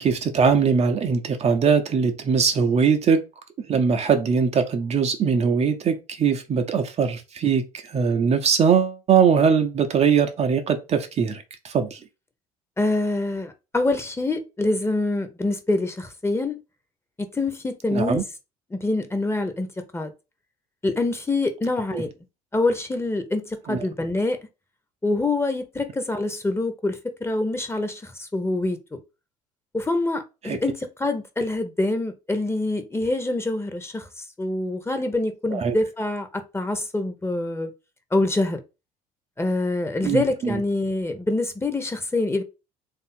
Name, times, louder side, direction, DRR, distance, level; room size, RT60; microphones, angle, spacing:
voice 1, 0.0-3.2 3.7-7.6 7.9-12.0 17.9-18.2 21.9-22.0 23.7-23.8 30.4-30.6 35.5-35.7 40.0-40.6, right 6 dB, 35° right, 0.7 m, -21 dB
voice 2, 12.8-16.6 17.3-18.2 18.7-19.7 19.9-20.1 20.8-22.1 22.5-24.4 25.0-29.0 29.7-34.1 34.4-36.3 36.5-37.7 38.1-38.6 39.4-42.4, left 2 dB, 15° left, 1.0 m, -25 dB
3.4 x 2.7 x 4.3 m
figure-of-eight pair, 60°, 18 cm